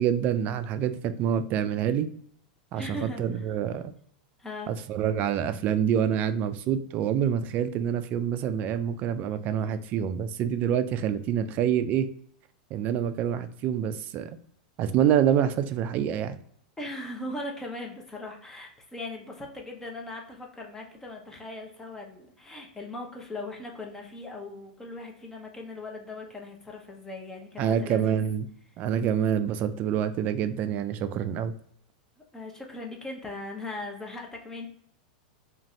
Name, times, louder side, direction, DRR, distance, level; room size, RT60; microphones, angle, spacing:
voice 1, 0.0-2.1 2.7-3.9 4.7-12.1 12.7-14.3 14.8-16.4 27.6-28.5 28.8-31.5, right 9 dB, 40° right, 10 dB, 0.3 m, -26 dB
voice 2, 2.7-3.4 4.4-4.7 16.8-28.2 32.3-34.7, left 2 dB, 10° left, 1 dB, 0.7 m, -39 dB
2.6 x 2.5 x 3.0 m, 0.63 s
hypercardioid pair, 110°, 4 cm